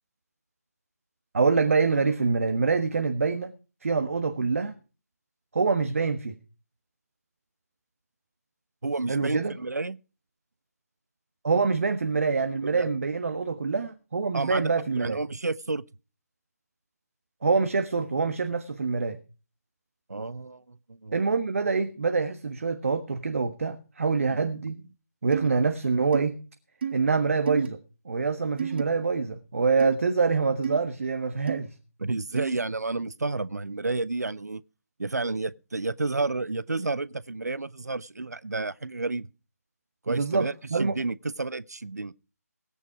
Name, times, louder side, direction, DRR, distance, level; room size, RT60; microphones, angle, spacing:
voice 1, 1.3-3.5 3.8-4.7 5.5-6.3 9.1-9.5 11.4-15.2 17.4-19.2 21.1-24.8 25.2-26.4 26.9-27.8 28.0-31.7 40.1-40.9, right 4 dB, 55° right, 1.4 m, -25 dB
voice 2, 8.8-10.0 12.6-12.9 14.3-15.8 20.1-21.3 24.3-24.5 32.0-34.6 35.0-39.3 40.1-40.5 40.8-42.1, right 3 dB, 80° right, 0.7 m, -31 dB
sound 1, 25.3-25.5 26.1-26.2 26.8-26.9 27.5-27.7 28.6-28.8 29.8-30.0 30.6-30.8 31.5-31.6 32.4-32.5, right 7 dB, 40° right, 1.0 m, -30 dB
17.0 x 9.7 x 4.9 m
figure-of-eight pair, 155°, 9 cm